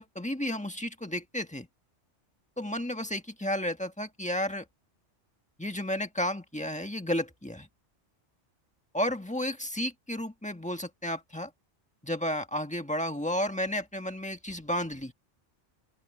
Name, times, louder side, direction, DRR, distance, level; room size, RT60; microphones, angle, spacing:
voice 1, 0.0-1.7 2.6-4.6 5.6-7.7 8.9-11.5 12.0-15.1, left 1 dB, 5° left, 1.5 m, -32 dB
open air
omnidirectional pair, 1.2 m